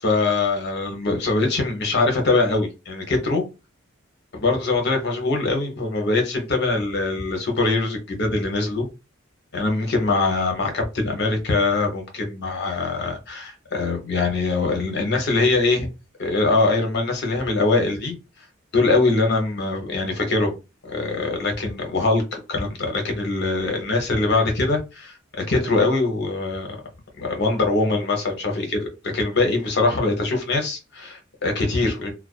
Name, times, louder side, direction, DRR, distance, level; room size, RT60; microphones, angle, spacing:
voice 1, 0.0-3.4 4.3-8.9 9.5-15.9 16.2-18.1 18.7-20.5 20.8-26.7 27.2-32.1, left 3 dB, 55° left, 0.8 m, -22 dB
2.4 x 2.1 x 2.3 m
head